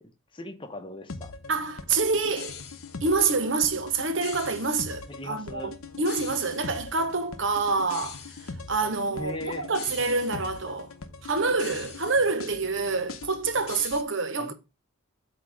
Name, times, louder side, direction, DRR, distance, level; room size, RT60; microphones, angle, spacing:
voice 1, 0.0-1.3 5.1-5.7 9.1-9.7 14.4-14.5, left 1 dB, 25° left, 0.9 m, -38 dB
sound 1, 1.1-14.0, left 5 dB, 85° left, 0.9 m, -41 dB
voice 2, 1.5-2.6 3.0-10.9 11.2-14.5, right 4 dB, 60° right, 1.0 m, -27 dB
8.3 x 3.0 x 6.2 m
head